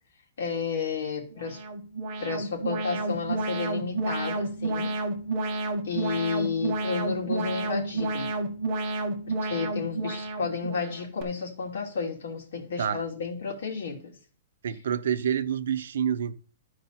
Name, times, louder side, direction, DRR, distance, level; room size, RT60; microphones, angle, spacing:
voice 1, 0.4-1.6 2.2-5.0 5.8-8.3 9.2-14.1, left 5 dB, 65° left, 3.1 m, -32 dB
Alarm, 1.3-11.2, right 2 dB, 25° right, 1.2 m, -31 dB
voice 2, 14.6-16.4, right 8 dB, 65° right, 0.7 m, -27 dB
13.5 x 4.8 x 4.2 m
hypercardioid pair, 180°, 0 cm